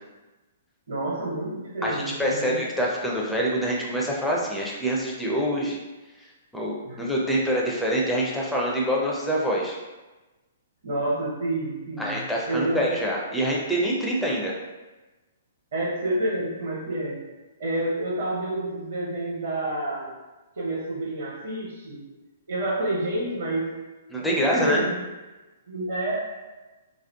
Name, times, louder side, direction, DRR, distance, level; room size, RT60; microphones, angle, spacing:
voice 1, 0.9-2.6 6.8-7.0 10.8-13.0 15.7-17.3 17.6-20.1 20.6-22.0 22.5-23.8 24.2-25.0 25.7-26.2, right 1 dB, 60° right, -5 dB, 0.7 m, -29 dB
voice 2, 1.8-5.8 6.5-9.8 12.0-14.6 24.1-24.8, equal, ahead, -4 dB, 0.4 m, -25 dB
2.5 x 2.3 x 2.2 m, 1.1 s
figure-of-eight pair, 115°, 0 cm